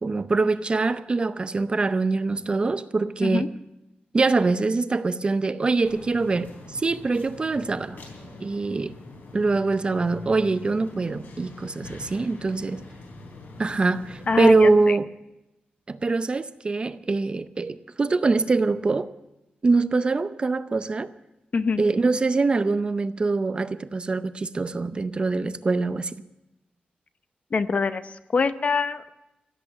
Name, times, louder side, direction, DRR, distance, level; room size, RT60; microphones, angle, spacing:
voice 1, 0.0-3.5 4.1-8.0 8.4-9.0 9.3-12.8 13.6-15.1 15.9-19.1 19.6-21.1 21.8-26.2, right 3 dB, 30° right, 0.5 m, -23 dB
sound 1, 5.9-14.7, left 3 dB, 85° left, 3.7 m, -43 dB
voice 2, 14.3-15.0 21.5-21.8 27.5-29.1, left 4 dB, 45° left, 0.7 m, -25 dB
16.5 x 8.5 x 9.1 m
wide cardioid pair, 150°, 3 cm